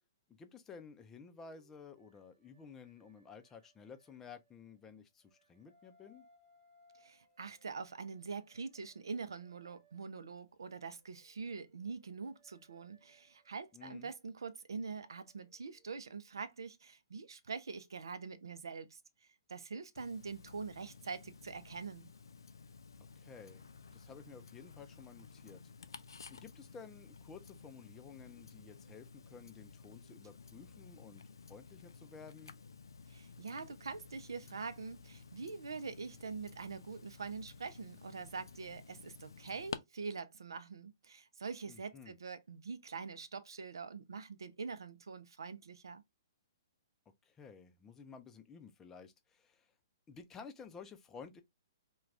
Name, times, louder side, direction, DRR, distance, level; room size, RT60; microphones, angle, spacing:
voice 1, 0.3-6.3 13.7-14.1 23.2-23.6 23.9-25.6 26.3-31.2 31.5-32.5 41.7-42.1 47.2-49.7 50.1-51.4, left 5 dB, 15° left, 0.4 m, -53 dB
sound 1, 1.2-4.8 5.2-10.4 10.9-16.5, right 1 dB, 40° right, 0.7 m, -71 dB
voice 2, 7.0-19.0 19.5-22.1 33.1-46.0, right 5 dB, 75° right, 0.5 m, -44 dB
Tick-tock, 20.0-39.8, left 5 dB, 75° left, 0.3 m, -53 dB
2.3 x 2.2 x 3.3 m
hypercardioid pair, 125°, 2 cm